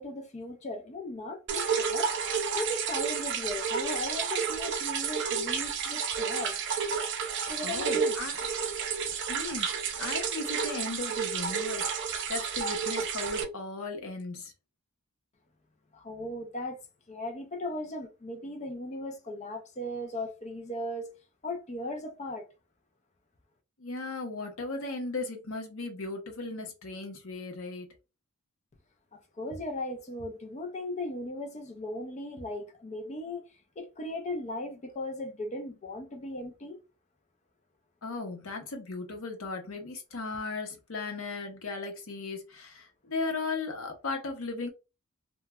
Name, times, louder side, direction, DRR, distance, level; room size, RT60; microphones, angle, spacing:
voice 1, 0.0-2.1 2.5-6.6 7.4-8.2 15.9-16.8 17.1-21.1 21.4-22.5 29.1-33.4 33.8-36.8, left 1 dB, 30° left, 0.5 m, -37 dB
sound 1, 1.5-13.4, right 6 dB, 55° right, 0.5 m, -31 dB
voice 2, 7.6-8.4 9.3-9.7 10.0-11.9 12.3-14.5 23.8-27.9 38.0-44.7, left 3 dB, 65° left, 0.8 m, -36 dB
3.1 x 2.2 x 2.2 m
head